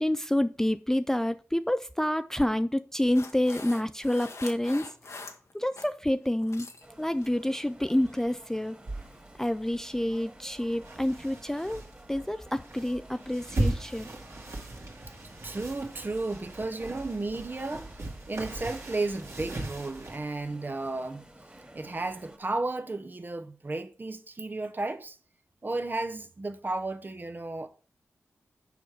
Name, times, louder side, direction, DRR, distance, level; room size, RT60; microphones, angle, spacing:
voice 1, 0.0-4.9 5.5-6.7 7.0-8.8 9.4-11.8 12.1-14.1, left 1 dB, 10° left, 0.4 m, -28 dB
sound 1, 3.1-5.9 6.3-6.9 7.2-7.5 8.0-8.2, left 3 dB, 70° left, 1.1 m, -44 dB
sound 2, 6.8-22.4, right 1 dB, 20° right, 1.9 m, -53 dB
sound 3, 8.9-20.2, right 2 dB, 60° right, 1.9 m, -37 dB
voice 2, 15.4-17.9 18.3-21.2 21.7-25.2 25.6-27.7, right 2 dB, 40° right, 0.9 m, -33 dB
6.9 x 4.9 x 4.6 m
cardioid pair, 50°, 5 cm